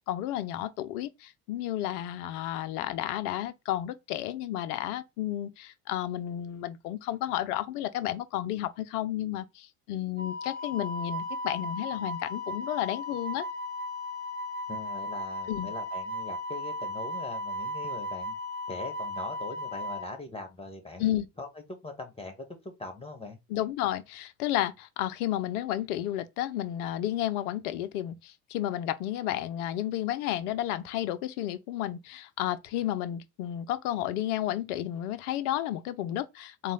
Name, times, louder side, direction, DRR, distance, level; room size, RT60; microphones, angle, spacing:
voice 1, 0.0-13.5 15.5-15.7 21.0-21.3 23.5-36.7, left 13 dB, 75° left, 0.7 m, -32 dB
Wind instrument woodwind instrument, 10.2-20.1, left 1 dB, 25° right, 2.4 m, -36 dB
voice 2, 14.7-18.3 18.7-21.1 21.4-23.4, left 3 dB, 15° left, 1.6 m, -41 dB
4.1 x 2.4 x 3.7 m
hypercardioid pair, 70°, 45 cm